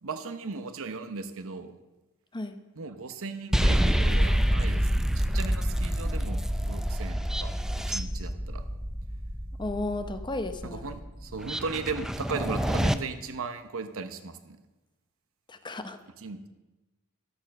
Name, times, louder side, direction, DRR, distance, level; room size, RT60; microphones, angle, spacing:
voice 1, 0.0-1.7 2.8-7.5 7.9-8.6 10.6-14.6 16.2-16.5, right 4 dB, 65° right, 9 dB, 0.9 m, -37 dB
sound 1, 3.5-13.0, equal, ahead, 0.4 m, -27 dB
voice 2, 9.6-10.8 15.5-16.0, left 2 dB, 20° left, 9 dB, 0.8 m, -34 dB
12.0 x 8.8 x 6.6 m, 1.1 s
head